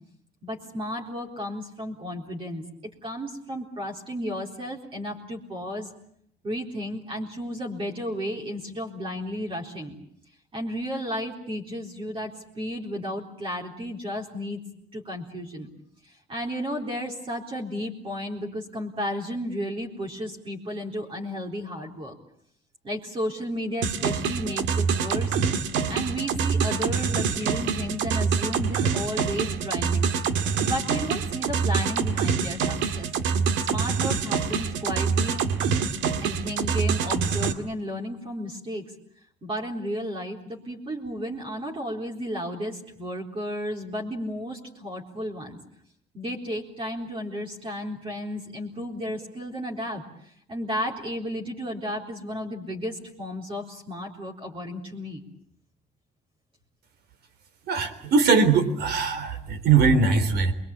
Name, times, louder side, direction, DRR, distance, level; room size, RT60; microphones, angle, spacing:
voice 1, 0.4-2.6 3.0-5.9 6.4-9.9 10.5-14.6 14.9-15.7 16.0-22.2 22.8-25.3 25.9-30.1 30.6-33.1 33.7-35.4 36.2-38.8 39.4-45.6 46.1-55.2, equal, 30° right, 0 dB, 4.0 m, -33 dB
sound 1, 23.8-37.5, right 6 dB, 90° right, 2.2 m, -26 dB
voice 2, 57.7-60.5, right 4 dB, 65° right, 10 dB, 3.8 m, -21 dB
28.0 x 22.5 x 8.7 m, 0.68 s
cardioid pair, 155°, 18 cm